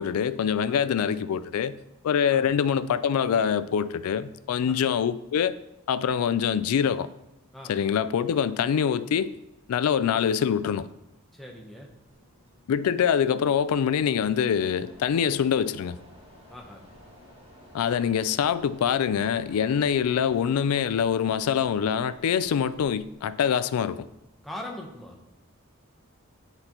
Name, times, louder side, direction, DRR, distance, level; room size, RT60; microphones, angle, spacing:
voice 1, 0.0-1.8 2.0-5.5 5.9-7.1 7.7-9.3 9.7-10.9 12.7-16.0 17.7-24.1, left 8 dB, 90° left, 0.3 m, -24 dB
voice 2, 11.3-11.9 16.5-16.8 24.4-25.2, left 1 dB, ahead, 0.8 m, -41 dB
Mechanisms, 12.1-24.4, equal, 25° right, 1.9 m, -53 dB
9.7 x 3.9 x 2.9 m
head